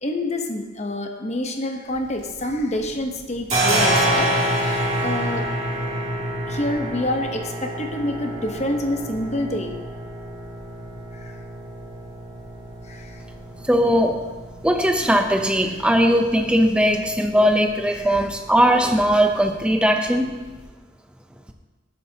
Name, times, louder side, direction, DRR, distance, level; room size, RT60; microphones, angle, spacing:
voice 1, 0.0-4.3 4.6-5.4 6.5-9.7 11.2-11.3 12.9-13.2 18.0-18.2, left 1 dB, 35° left, 4 dB, 1.0 m, -27 dB
sound 1, 1.9-2.8 3.1-20.6, right 1 dB, 35° right, 2.7 m, -28 dB
voice 2, 13.7-14.2 14.6-20.4, equal, 5° right, 4 dB, 0.6 m, -19 dB
17.5 x 8.3 x 2.9 m, 1.2 s
head